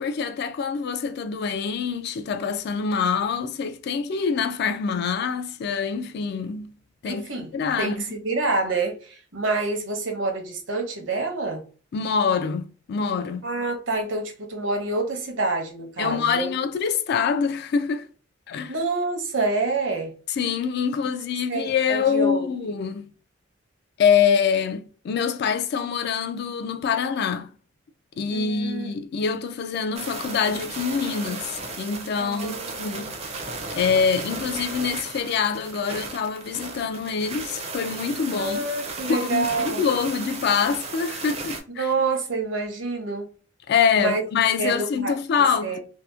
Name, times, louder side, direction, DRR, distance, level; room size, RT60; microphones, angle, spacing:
voice 1, 0.0-6.7 7.0-8.2 11.9-13.4 16.0-18.1 18.5-18.7 20.3-23.1 24.0-27.5 28.2-33.1 33.7-38.6 39.1-41.9 43.7-45.8, left 6 dB, 55° left, 0.3 m, -25 dB
voice 2, 7.1-7.5 7.8-11.6 13.4-16.5 18.7-20.1 21.5-22.5 28.3-28.9 32.2-33.1 38.4-39.8 41.8-43.3 44.0-44.2 44.6-45.2 45.6-45.8, right 3 dB, 70° right, 0.8 m, -27 dB
sound 1, 29.9-41.6, right 3 dB, 30° right, 0.4 m, -35 dB
2.8 x 2.0 x 2.3 m
head